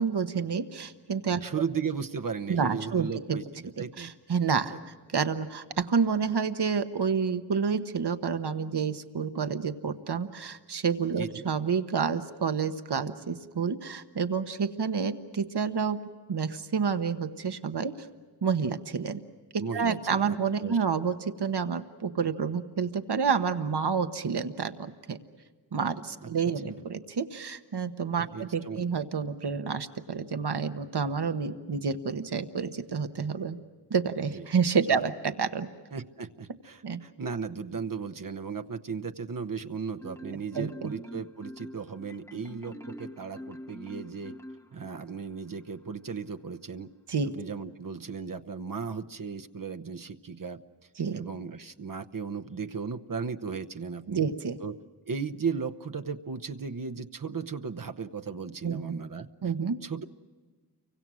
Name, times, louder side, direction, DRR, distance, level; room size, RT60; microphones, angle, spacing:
voice 1, 0.0-1.4 2.5-3.4 4.0-4.7 5.1-16.0 16.3-18.1 18.4-19.2 19.7-25.2 25.7-33.6 33.9-35.7 36.8-37.0 40.5-40.9 47.1-47.3 51.0-51.2 54.1-54.6 58.6-58.8 59.4-59.8, right 6 dB, 75° right, 9 dB, 1.3 m, -29 dB
voice 2, 1.3-4.1 4.5-4.8 11.1-11.4 19.6-20.8 26.2-26.3 26.7-26.8 28.1-29.0 34.3-34.5 34.9-35.0 35.9-44.3 44.7-46.9 47.3-50.6 51.1-54.2 54.6-54.7 55.1-59.3 59.8-60.0, right 5 dB, 55° right, 7 dB, 1.0 m, -36 dB
Marimba xylophone, 40.0-45.2, equal, 5° left, 0.9 m, -44 dB
30.0 x 24.5 x 6.3 m, 1.4 s
wide cardioid pair, 80°, 40 cm